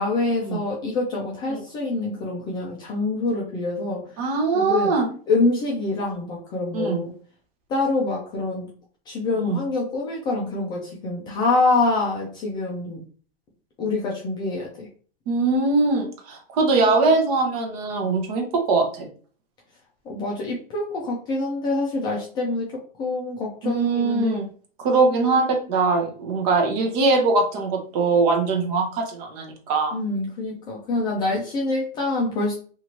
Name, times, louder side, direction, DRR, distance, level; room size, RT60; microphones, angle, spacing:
voice 1, 0.0-4.1 4.5-5.0 5.3-7.1 7.7-8.7 9.1-13.0 13.8-14.9 20.1-22.7 23.0-24.5 29.9-32.6, left 3 dB, 15° left, -2 dB, 0.3 m, -25 dB
voice 2, 4.2-5.1 6.7-7.0 9.4-9.6 15.3-19.1 23.6-24.5 24.8-30.0, right 3 dB, 40° right, 4 dB, 0.8 m, -22 dB
2.8 x 2.5 x 2.9 m, 0.42 s
hypercardioid pair, 145°, 29 cm